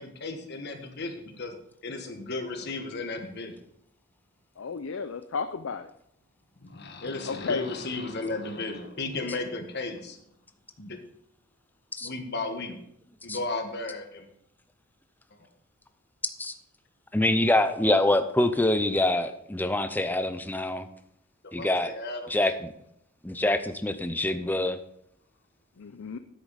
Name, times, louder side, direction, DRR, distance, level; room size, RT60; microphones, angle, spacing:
voice 1, 0.0-1.5 1.8-3.5 6.6-10.2 10.8-11.0 12.0-12.8 13.2-14.2 21.6-22.3, left 2 dB, 50° left, 5 dB, 1.5 m, -34 dB
voice 2, 4.6-5.9 7.2-7.6 25.8-26.2, left 5 dB, 70° left, 9 dB, 0.5 m, -32 dB
voice 3, 17.1-20.9 21.5-21.9 22.3-22.7 23.2-24.8, left 1 dB, 10° left, 9 dB, 0.6 m, -25 dB
10.0 x 8.2 x 4.1 m, 0.74 s
head